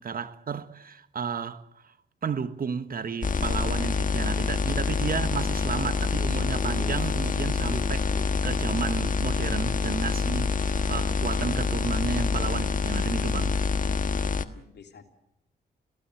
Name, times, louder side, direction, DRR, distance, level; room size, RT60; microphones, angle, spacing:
voice 1, 0.0-1.9 2.2-13.6, right 6 dB, 50° right, 1.2 m, -32 dB
sound 1, 3.2-14.4, left 5 dB, 45° left, 1.3 m, -26 dB
Laughter, 6.5-8.3 8.6-8.8 9.0-9.2 9.5-11.1, left 1 dB, 5° left, 2.3 m, -45 dB
voice 2, 14.1-15.0, left 6 dB, 65° left, 3.2 m, -50 dB
26.0 x 16.5 x 8.0 m
supercardioid pair, 60°, 19 cm